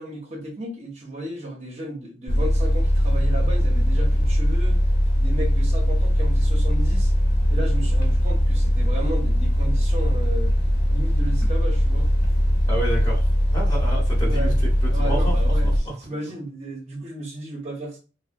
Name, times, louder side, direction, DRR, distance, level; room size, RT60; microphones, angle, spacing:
voice 1, 0.0-4.8 5.1-7.1 7.5-10.5 10.9-12.1 14.2-14.6 14.9-18.0, right 1 dB, 35° right, 0.7 m, -34 dB
sound 1, 2.3-15.8, equal, 60° left, 1.0 m, -20 dB
voice 2, 12.7-14.5 15.0-15.3 15.6-16.1, right 1 dB, 20° left, 1.2 m, -30 dB
3.4 x 2.0 x 2.6 m
head